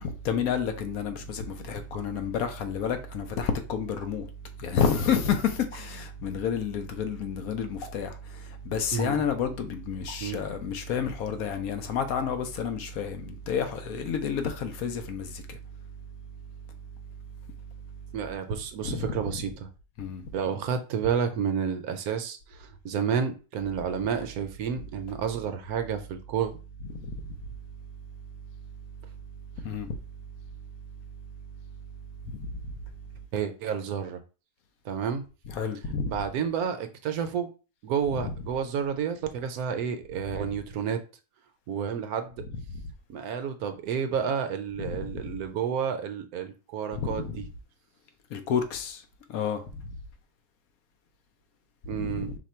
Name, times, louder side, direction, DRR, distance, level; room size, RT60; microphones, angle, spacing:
voice 1, 0.0-4.3 4.6-8.1 8.6-15.4 18.8-19.2 20.0-20.2 29.6-29.9 32.4-32.5 35.5-36.1 38.2-38.3 44.8-45.2 46.9-47.4 48.3-49.0 49.3-49.6 52.0-52.3, left 7 dB, 70° left, 1.0 m, -30 dB
sound 1, 1.9-2.1 3.0-3.1 3.9-4.1 5.7-5.9 7.8-8.0 9.0-9.2 10.1-10.3 11.5-11.6 12.2-12.4 12.6-12.8, left 1 dB, 40° left, 1.4 m, -45 dB
voice 2, 8.9-9.2 10.2-10.4 18.1-19.7 20.3-26.6 33.3-34.2 34.8-35.2 36.0-37.5 37.8-41.0 41.7-42.3 43.1-47.5 51.9-52.3, right 7 dB, 70° right, 1.0 m, -30 dB
5.0 x 2.2 x 4.2 m
omnidirectional pair, 1.7 m